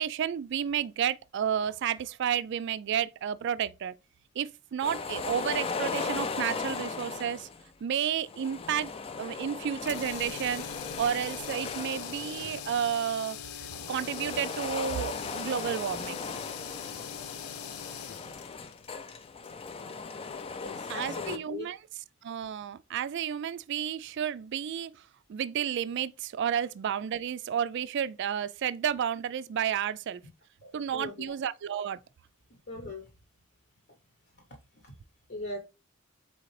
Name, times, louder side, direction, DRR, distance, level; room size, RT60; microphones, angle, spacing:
voice 1, 0.0-3.9 4.4-7.5 7.8-8.9 9.2-10.7 11.0-13.4 13.9-16.2 20.9-21.8 22.2-24.9 25.3-30.2 30.7-32.0, right 8 dB, 55° right, 0.3 m, -31 dB
sound 1, 4.8-7.6 8.2-13.0 13.7-21.4, left 4 dB, 25° left, 0.3 m, -38 dB
sound 2, 9.8-19.9, left 8 dB, 90° left, 0.5 m, -42 dB
voice 2, 20.4-21.7 30.6-31.3 32.7-33.0 34.8-34.9 35.3-35.6, left 2 dB, 50° left, 0.9 m, -40 dB
4.2 x 3.7 x 3.2 m
head